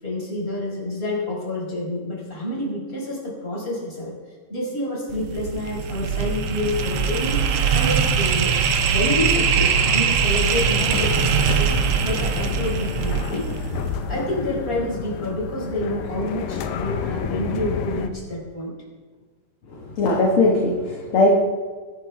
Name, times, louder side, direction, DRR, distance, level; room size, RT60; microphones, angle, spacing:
voice 1, 0.0-4.1 4.5-8.5 8.9-11.7 12.0-13.4 14.1-18.7, left 1 dB, 15° left, -4 dB, 5.0 m, -28 dB
sound 1, 5.1-14.2, right 6 dB, 65° right, 1.6 m, -22 dB
sound 2, 10.2-18.1, left 7 dB, 80° left, 2.7 m, -30 dB
voice 2, 19.7-21.3, left 2 dB, 50° left, -1 dB, 2.1 m, -19 dB
24.0 x 11.0 x 3.5 m, 1.5 s
omnidirectional pair, 3.9 m